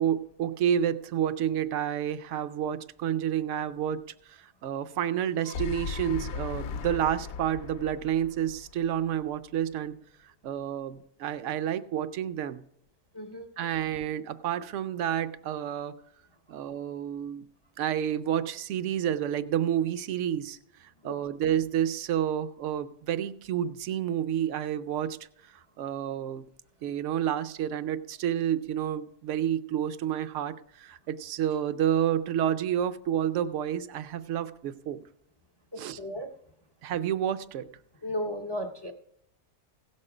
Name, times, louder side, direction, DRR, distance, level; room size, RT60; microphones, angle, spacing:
voice 1, 0.0-10.0 10.4-12.6 13.6-15.9 16.5-17.5 17.8-25.2 25.5-26.4 26.8-35.0 35.8-36.0 36.8-37.7, right 10 dB, 65° right, 12 dB, 0.7 m, -30 dB
sound 1, 5.2-9.4, left 6 dB, 70° left, 0.9 m, -37 dB
voice 2, 13.1-13.5 21.0-21.2 35.7-36.3 38.0-38.9, equal, 40° left, 5 dB, 0.3 m, -35 dB
16.5 x 6.5 x 4.9 m, 0.72 s
omnidirectional pair, 1.7 m